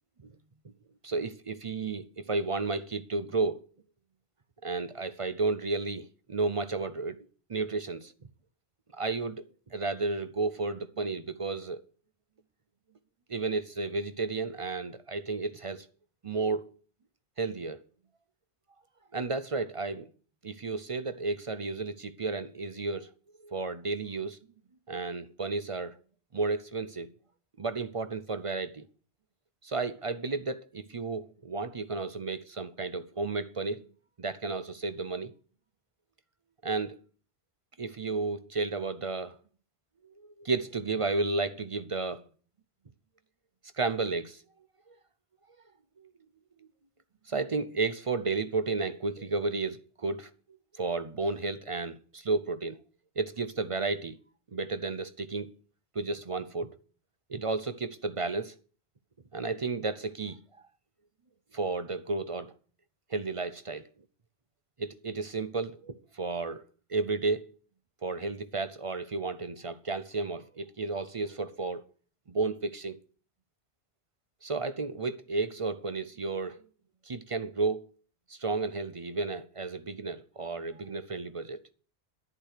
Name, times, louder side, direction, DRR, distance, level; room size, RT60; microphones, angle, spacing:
voice 1, 1.0-3.6 4.6-7.2 7.5-8.1 8.9-9.4 9.7-11.8 13.3-15.9 16.2-16.6 17.4-17.8 19.1-20.1 20.4-23.1 23.4-24.4 24.9-26.0 26.3-27.1 27.6-28.8 29.6-33.8 34.2-35.3 36.6-37.0 37.8-39.4 40.4-42.2 43.8-44.4 44.9-45.0 47.3-50.3 50.8-52.8 53.2-54.2 54.5-55.5 55.9-56.7 57.3-58.5 59.3-60.4 61.5-62.5 63.1-63.9 64.8-66.6 66.9-67.5 68.0-71.8 72.3-73.0 74.4-76.6 77.1-77.8 78.3-81.6, right 3 dB, 40° right, 0.5 m, -32 dB
11.0 x 10.0 x 6.5 m
omnidirectional pair, 1.1 m